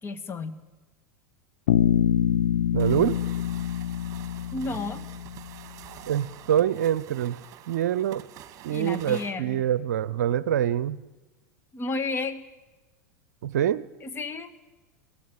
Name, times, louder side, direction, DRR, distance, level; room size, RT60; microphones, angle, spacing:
voice 1, 0.0-0.6 4.5-5.1 8.7-9.6 11.7-12.4 14.0-14.5, left 3 dB, 25° left, 7 dB, 1.9 m, -32 dB
Bass guitar, 1.7-5.7, left 10 dB, 70° left, 1.0 m, -25 dB
voice 2, 2.7-3.2 6.1-7.4 7.7-8.2 8.6-11.0 13.4-13.8, right 10 dB, 70° right, 18 dB, 0.7 m, -25 dB
sound 1, 2.8-9.4, right 12 dB, 40° right, 2.0 m, -47 dB
23.0 x 17.0 x 8.6 m, 1.2 s
hypercardioid pair, 85°, 9 cm